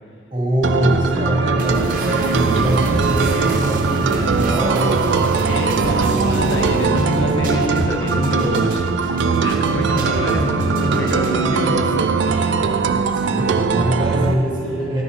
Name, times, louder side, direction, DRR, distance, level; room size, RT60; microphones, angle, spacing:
voice 1, 0.3-5.1 13.1-15.0, equal, 25° right, -4 dB, 1.7 m, -22 dB
sound 1, 0.6-14.3, right 5 dB, 75° right, 0.4 m, -20 dB
sound 2, 1.6-11.6, right 1 dB, 45° right, 0.8 m, -28 dB
voice 2, 5.4-12.6, left 1 dB, 75° left, 3 dB, 0.7 m, -25 dB
10.0 x 6.0 x 3.7 m, 2.6 s
head